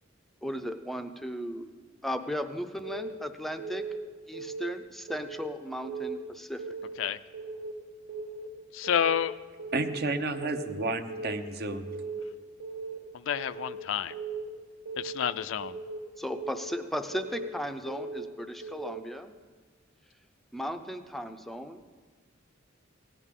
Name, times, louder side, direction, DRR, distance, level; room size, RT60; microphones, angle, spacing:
voice 1, 0.4-1.7 2.0-3.9 4.3-6.6 16.2-19.3 20.5-21.8, equal, ahead, 7 dB, 0.5 m, -36 dB
Keyboard (musical) / Alarm, 2.8-3.2 3.6-4.0 4.3-4.7 5.1-5.5 5.8-6.2 6.6-7.0 7.3-7.7 8.1-8.5 8.8-9.2 9.6-10.0 10.3-10.7 11.1-11.5 11.8-12.2 12.6-13.0 13.3-13.7 14.1-14.5 14.8-15.2 15.6-16.0 16.4-16.7 17.1-17.5 17.9-18.2 18.6-19.0, right 3 dB, 80° right, 1.7 m, -38 dB
voice 2, 8.7-9.3 13.3-14.1 15.0-15.7, left 9 dB, 70° left, 13 dB, 0.4 m, -29 dB
voice 3, 9.7-11.9, right 3 dB, 55° right, 7 dB, 0.8 m, -31 dB
17.0 x 9.9 x 3.7 m, 1.5 s
head